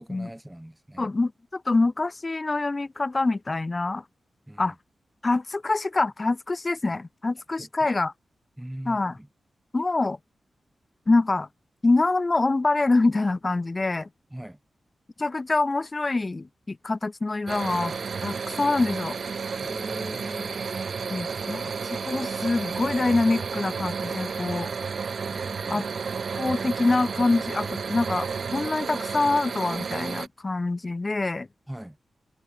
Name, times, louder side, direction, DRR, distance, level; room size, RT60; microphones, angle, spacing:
voice 1, 0.0-1.1 4.5-4.7 7.6-7.9 8.6-9.3 14.3-14.6 19.6-20.6 25.3-25.8 31.7-32.0, right 1 dB, 5° right, 3.2 m, -40 dB
voice 2, 1.0-4.0 4.6-4.7 5.2-8.1 8.8-9.2 9.7-10.2 11.1-11.5 11.8-14.1 15.2-17.9 18.2-19.2 21.1-24.7 25.7-25.8 26.4-31.5, left 3 dB, 30° left, 1.6 m, -25 dB
sound 1, 17.5-30.3, right 5 dB, 60° right, 0.7 m, -32 dB
wide cardioid pair, 120°, 0 cm